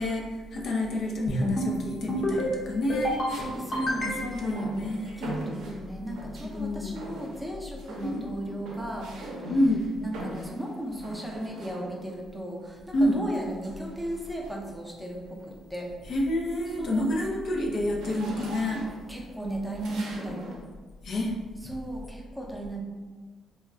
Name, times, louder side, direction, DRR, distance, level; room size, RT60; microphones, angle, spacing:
voice 1, 0.0-3.1 4.0-5.4 6.4-7.0 8.0-8.2 9.5-9.8 12.9-13.2 16.0-18.8 21.0-21.3, left 1 dB, 60° left, 0 dB, 0.4 m, -28 dB
sound 1, 1.3-1.7 2.1-2.5 2.9-3.3 3.7-4.5, equal, 35° left, 0.8 m, -28 dB
sound 2, 1.4-1.9 3.3-6.6 7.0-7.5 7.8-12.2 13.3-14.7 15.2-15.5 15.9-20.6, right 1 dB, 80° right, 0.5 m, -42 dB
voice 2, 3.4-9.1 10.0-15.9 16.8-17.2 19.1-20.6 21.6-22.8, right 1 dB, ahead, -1 dB, 0.5 m, -36 dB
2.3 x 2.1 x 3.5 m, 1.4 s
cardioid pair, 90°, 0 cm